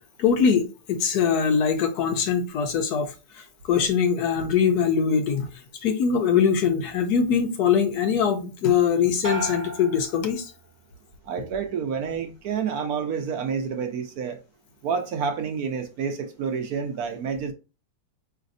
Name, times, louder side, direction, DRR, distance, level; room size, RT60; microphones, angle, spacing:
voice 1, 0.2-5.5 5.8-10.5, left 7 dB, 70° left, 1.1 m, -22 dB
sound 1, 9.2-11.0 11.4-12.0, equal, 20° right, 0.5 m, -35 dB
voice 2, 11.3-14.4 14.8-17.5, right 6 dB, 70° right, 1.0 m, -29 dB
5.0 x 3.2 x 2.5 m
omnidirectional pair, 1.9 m